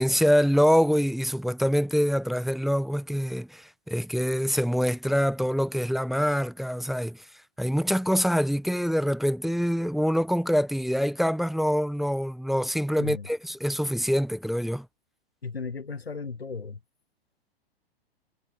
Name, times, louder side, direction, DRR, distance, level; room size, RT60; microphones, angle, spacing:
voice 1, 0.0-7.2 7.6-14.9, equal, ahead, 0.4 m, -25 dB
voice 2, 15.4-16.8, left 4 dB, 80° left, 2.6 m, -35 dB
figure-of-eight pair, 105°, 30 cm